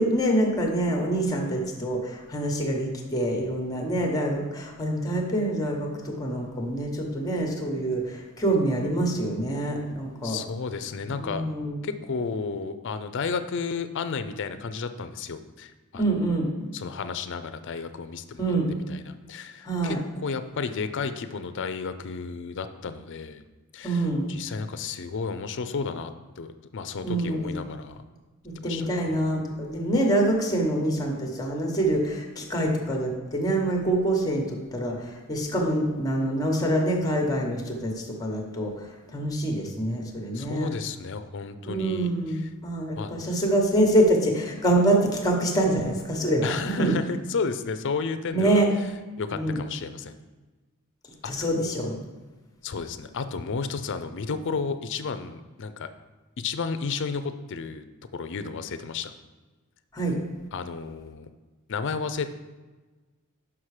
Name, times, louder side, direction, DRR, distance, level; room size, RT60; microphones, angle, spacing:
voice 1, 0.0-10.4 11.1-11.8 15.9-16.5 18.4-18.7 19.6-20.0 23.8-24.3 27.0-27.5 28.4-38.8 39.1-40.7 41.7-47.0 48.3-48.7 49.3-49.6 51.2-52.0 59.9-60.2, right 1 dB, 15° left, 1 dB, 1.1 m, -25 dB
voice 2, 10.2-11.4 11.8-16.2 16.7-23.4 23.7-28.0 28.6-29.2 40.3-42.5 43.0-43.1 46.4-48.6 49.2-50.2 51.2-51.5 52.6-55.9 56.4-57.8 58.1-59.1 60.5-61.3 61.7-62.3, left 5 dB, 55° left, 10 dB, 0.5 m, -32 dB
6.0 x 5.9 x 4.8 m, 1.2 s
head